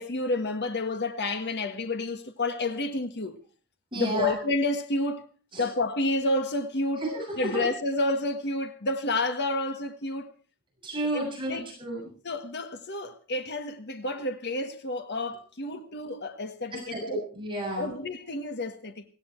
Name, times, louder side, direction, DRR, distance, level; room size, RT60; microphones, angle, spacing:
voice 1, 0.0-3.4 3.9-5.2 5.6-7.1 7.4-10.3 11.1-11.7 12.2-17.2 17.7-19.0, left 2 dB, 50° left, 1.6 m, -30 dB
voice 2, 3.9-4.3 5.5-5.6 7.0-7.2 7.5-7.6 10.8-12.1 16.7-17.9, right 1 dB, 25° right, 7.4 m, -31 dB
17.5 x 16.5 x 4.6 m
head